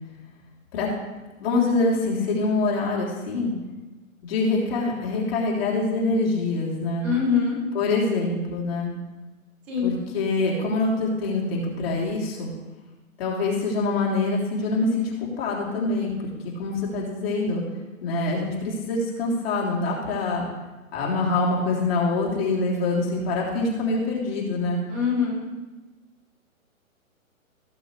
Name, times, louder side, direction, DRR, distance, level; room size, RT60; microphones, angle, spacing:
voice 1, 1.4-3.5 4.2-7.1 7.7-8.9 9.8-12.5 13.2-16.1 16.6-17.6 18.0-20.5 20.9-24.8, left 3 dB, 45° left, -4 dB, 3.4 m, -25 dB
voice 2, 7.0-7.6 9.7-10.0 24.9-25.5, left 6 dB, 5° right, -4 dB, 0.4 m, -23 dB
17.5 x 7.1 x 3.3 m, 1.2 s
hypercardioid pair, 135°, 42 cm